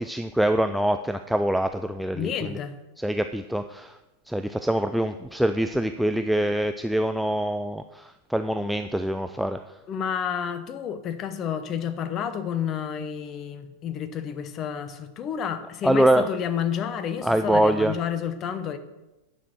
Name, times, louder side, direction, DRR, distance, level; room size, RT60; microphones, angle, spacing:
voice 1, 0.0-2.5 3.0-3.9 4.3-9.6 15.8-16.3 17.2-17.9, right 1 dB, ahead, 8 dB, 0.3 m, -24 dB
voice 2, 2.1-2.8 9.9-18.8, left 8 dB, 30° left, 10 dB, 0.8 m, -30 dB
9.2 x 6.1 x 6.1 m, 1.0 s
figure-of-eight pair, 90°, 0 cm